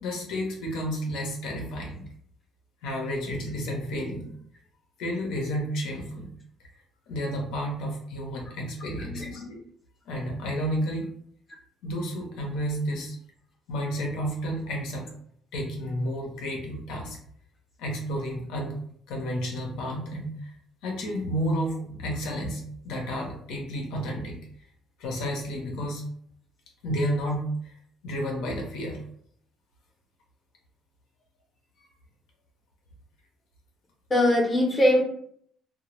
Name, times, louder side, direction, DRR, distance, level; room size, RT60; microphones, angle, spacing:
voice 1, 0.0-2.1 2.8-4.3 5.0-6.3 7.1-9.6 10.1-11.1 11.8-13.2 13.7-15.0 15.5-17.2 17.8-18.8 19.1-20.5 20.8-24.4 25.0-26.0 26.8-27.5 28.0-29.0, equal, 85° left, 0 dB, 0.7 m, -31 dB
voice 2, 9.0-9.3 34.1-35.0, left 1 dB, 20° left, -2 dB, 0.6 m, -21 dB
2.1 x 2.0 x 2.9 m, 0.65 s
cardioid pair, 165°, 0 cm